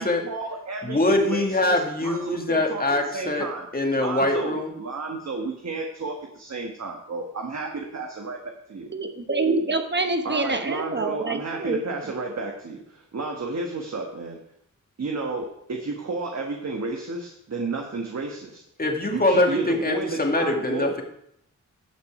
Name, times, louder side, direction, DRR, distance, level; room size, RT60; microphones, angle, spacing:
voice 1, 0.0-2.8 3.1-3.7 4.0-8.4 8.7-8.9 10.2-14.4 15.0-18.6 19.1-20.9, right 3 dB, 55° right, 1 dB, 1.4 m, -32 dB
voice 2, 0.8-3.5 3.7-4.7 18.8-21.0, left 2 dB, 30° left, 2 dB, 2.1 m, -23 dB
voice 3, 8.9-12.1, right 3 dB, 35° right, 6 dB, 1.1 m, -26 dB
11.0 x 6.1 x 4.9 m, 0.75 s
cardioid pair, 50°, 31 cm